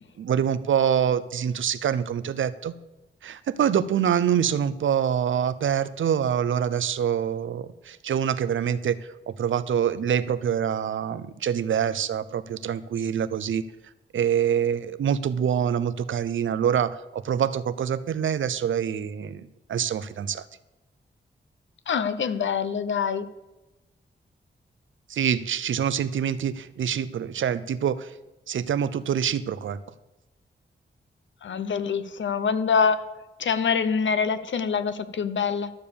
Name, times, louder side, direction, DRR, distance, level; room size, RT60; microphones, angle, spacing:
voice 1, 0.2-2.7 3.2-9.0 9.3-13.6 14.1-20.4 25.1-28.1 28.5-29.8, right 8 dB, 85° right, 15 dB, 0.6 m, -25 dB
voice 2, 21.9-23.3 31.4-33.0 33.4-35.7, left 6 dB, 75° left, 12 dB, 0.8 m, -25 dB
12.5 x 6.9 x 6.9 m, 1.0 s
cardioid pair, 60°, 20 cm